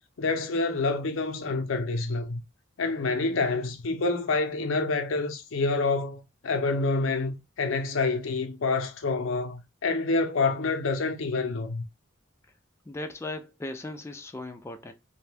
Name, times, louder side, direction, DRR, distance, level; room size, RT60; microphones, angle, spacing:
voice 1, 0.2-2.4 2.8-11.8, left 3 dB, 90° left, 0.6 m, -27 dB
voice 2, 12.9-14.9, left 2 dB, 15° left, 0.3 m, -37 dB
2.5 x 2.2 x 3.3 m
head